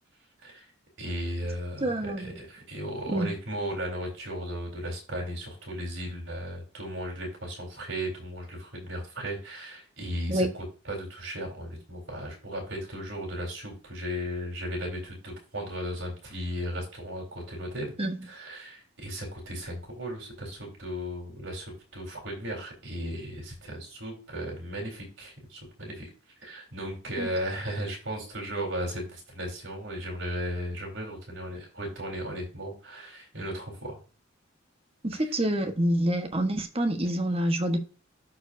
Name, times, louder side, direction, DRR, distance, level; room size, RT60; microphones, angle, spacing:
voice 1, 1.0-10.5 10.9-17.9 18.3-26.1 26.4-34.0, equal, 65° right, 4.0 m, -36 dB
voice 2, 1.8-2.3 3.1-3.3 10.3-10.5 18.0-18.2 27.2-27.3 35.0-37.8, right 1 dB, 30° right, 1.2 m, -27 dB
12.0 x 4.6 x 2.7 m
head